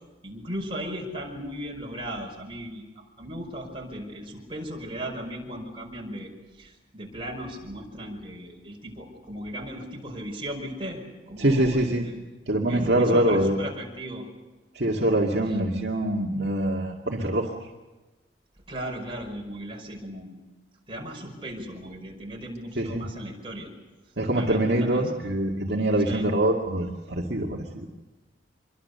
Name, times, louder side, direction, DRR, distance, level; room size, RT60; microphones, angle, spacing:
voice 1, 0.2-11.0 11.3-12.2 12.7-14.2 15.5-15.6 18.7-20.4 20.9-23.7 24.3-25.1 26.0-26.3, equal, 30° right, 0 dB, 5.5 m, -37 dB
voice 2, 11.4-12.0 12.5-13.6 14.7-17.5 22.8-23.0 24.2-27.9, right 1 dB, 65° right, -1 dB, 2.1 m, -24 dB
26.0 x 23.0 x 6.8 m, 1.2 s
head